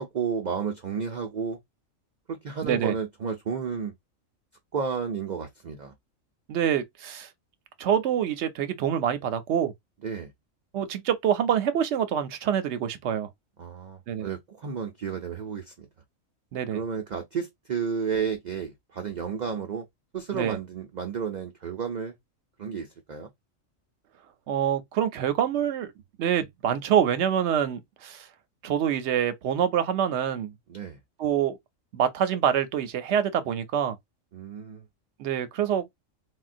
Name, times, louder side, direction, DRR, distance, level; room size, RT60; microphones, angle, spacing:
voice 1, 0.0-1.6 2.3-3.9 4.7-5.9 10.0-10.3 13.6-15.9 16.7-19.8 20.1-22.1 22.6-23.3 30.7-31.0 34.3-34.8, right 6 dB, 80° right, 0.4 m, -32 dB
voice 2, 2.6-2.9 6.5-7.3 7.8-9.7 10.7-13.3 14.1-14.3 16.5-16.8 20.3-20.6 24.5-25.9 26.2-28.3 28.6-30.5 31.2-31.6 31.9-34.0 35.2-35.9, right 9 dB, 65° right, 0.8 m, -26 dB
3.6 x 2.2 x 2.5 m
omnidirectional pair, 1.4 m